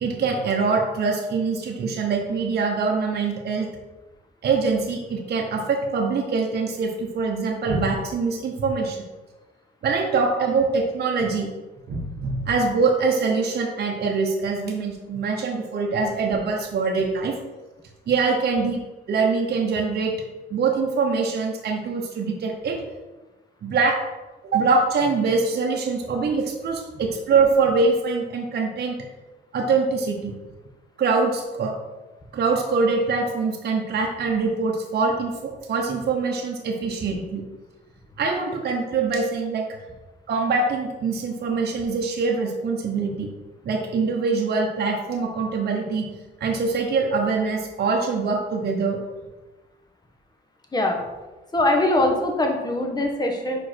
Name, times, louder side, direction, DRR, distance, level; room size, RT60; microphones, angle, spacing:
voice 1, 0.0-3.7 4.4-9.0 9.8-11.5 11.9-17.4 18.1-18.8 19.1-20.2 20.5-22.8 23.6-24.0 24.5-29.0 29.5-30.3 31.0-31.8 32.3-37.4 38.2-39.7 40.3-43.3 43.6-46.1 46.4-49.0, right 4 dB, 55° right, 0 dB, 0.9 m, -23 dB
voice 2, 51.5-53.6, left 1 dB, 20° left, 2 dB, 1.3 m, -22 dB
5.3 x 4.7 x 4.4 m, 1.2 s
cardioid pair, 90°, 20 cm